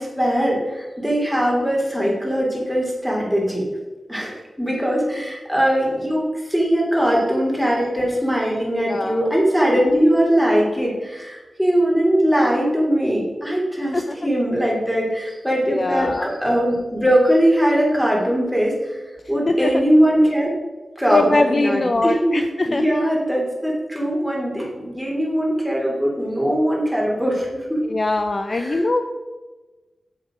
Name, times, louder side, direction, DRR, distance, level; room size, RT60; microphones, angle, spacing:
voice 1, 0.0-3.7 4.1-19.0 19.3-20.5 21.0-27.8 28.5-28.9, equal, ahead, -3 dB, 3.2 m, -20 dB
voice 2, 8.9-9.2 13.9-14.2 15.7-16.3 19.5-19.7 21.1-22.8 27.8-29.0, left 2 dB, 40° left, 6 dB, 0.6 m, -21 dB
8.2 x 7.8 x 5.1 m, 1.2 s
wide cardioid pair, 105°, 0 cm